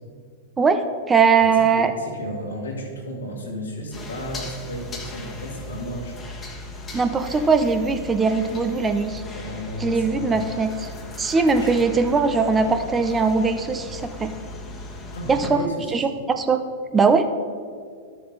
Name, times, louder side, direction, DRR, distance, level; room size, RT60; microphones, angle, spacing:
voice 1, 0.6-1.9 6.9-9.2 9.8-10.7 11.2-14.3 15.3-15.6 15.9-16.6 16.9-17.3, right 4 dB, 20° right, 8 dB, 0.7 m, -20 dB
voice 2, 1.4-6.2 9.3-10.4 11.3-11.7 15.1-15.9, equal, 85° left, -2 dB, 1.9 m, -33 dB
sound 1, 3.9-15.5, left 2 dB, 25° left, 1.4 m, -37 dB
12.0 x 6.7 x 4.0 m, 2.2 s
hypercardioid pair, 100°, 0 cm